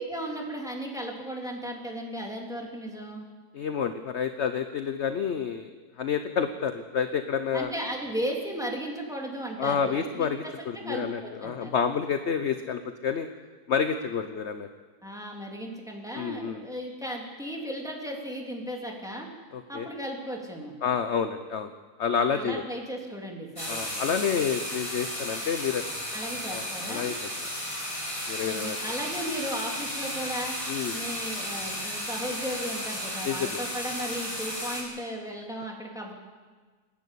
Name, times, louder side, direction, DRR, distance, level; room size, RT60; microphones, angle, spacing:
voice 1, 0.0-3.2 7.5-11.7 15.0-19.3 19.7-20.8 22.3-24.0 26.1-27.1 28.5-30.6 30.9-36.1, equal, ahead, 0 dB, 3.1 m, -35 dB
voice 2, 3.5-7.7 9.6-13.3 13.7-14.7 16.1-16.6 19.5-19.9 20.8-21.7 22.0-22.6 23.7-25.8 26.5-27.3 28.3-28.8 30.7-30.9 33.2-33.6, left 7 dB, 50° left, 9 dB, 1.0 m, -29 dB
sound 1, 23.6-34.8, equal, 20° left, 5.3 m, -34 dB
29.0 x 11.0 x 8.4 m, 1.4 s
omnidirectional pair, 1.7 m